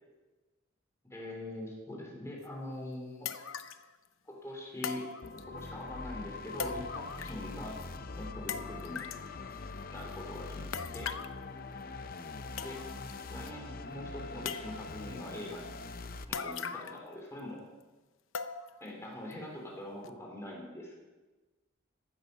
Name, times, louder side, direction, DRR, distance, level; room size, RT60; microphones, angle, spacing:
voice 1, 1.1-3.3 4.2-5.1 5.5-7.8 8.2-9.0 9.9-11.1 12.6-12.8 13.3-15.7 16.3-17.6 18.8-20.9, left 1 dB, 15° left, -1 dB, 3.2 m, -43 dB
sound 1, 2.4-2.5 3.2-3.9 4.8-5.7 6.6-7.5 7.8-7.9 8.5-9.3 10.7-11.4 12.2-12.3 12.6-13.1 13.5-13.6 14.4-15.0 16.3-17.1 17.4-17.5 18.3-18.9 19.3-19.4 20.0-20.1, left 6 dB, 85° left, 0.8 m, -39 dB
sound 2, 5.2-16.2, left 3 dB, 45° left, 0.7 m, -43 dB
15.0 x 12.5 x 5.5 m, 1.2 s
head